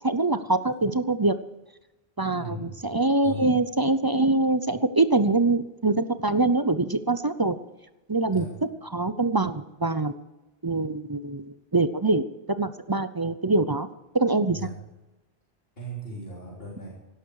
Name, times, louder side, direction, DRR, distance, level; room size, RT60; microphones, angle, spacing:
voice 1, 0.0-1.4 2.2-7.6 8.1-8.5 8.9-10.1 10.6-13.9 14.1-14.6, right 2 dB, 25° right, 12 dB, 0.6 m, -24 dB
voice 2, 2.3-2.8 3.2-3.5 8.3-8.5 14.5-14.8 15.8-16.9, equal, 65° left, -5 dB, 3.8 m, -37 dB
17.0 x 12.5 x 4.8 m, 1.0 s
omnidirectional pair, 1.1 m